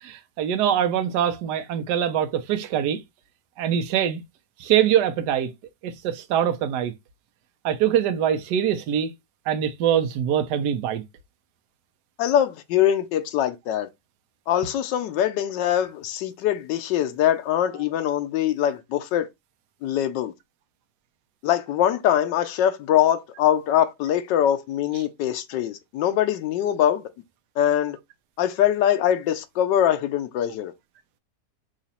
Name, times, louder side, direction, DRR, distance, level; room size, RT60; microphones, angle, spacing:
voice 1, 0.0-3.0 3.6-4.2 4.6-5.5 5.8-6.9 7.6-9.1 9.5-11.0, right 9 dB, 75° right, 1.3 m, -23 dB
voice 2, 12.2-13.9 14.5-19.3 19.8-20.3 21.4-27.0 27.6-28.0 28.4-30.7, left 10 dB, 90° left, 1.3 m, -23 dB
4.9 x 2.4 x 4.2 m
omnidirectional pair, 1.9 m